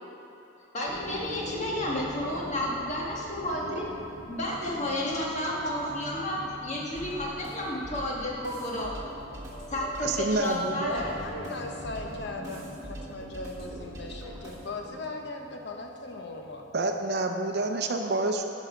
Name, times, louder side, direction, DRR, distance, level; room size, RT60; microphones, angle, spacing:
voice 1, 0.7-3.9 4.3-8.9 9.7-11.1, left 1 dB, 35° left, -3 dB, 1.5 m, -31 dB
sound 1, 0.9-17.3, equal, ahead, 0.9 m, -44 dB
sound 2, 6.9-14.9, right 1 dB, 15° right, 1.4 m, -44 dB
voice 2, 10.0-11.0 16.7-18.5, right 2 dB, 55° right, 3 dB, 0.5 m, -28 dB
voice 3, 10.9-16.6, left 2 dB, 60° left, 2 dB, 0.9 m, -38 dB
10.5 x 5.5 x 5.1 m, 3.0 s
head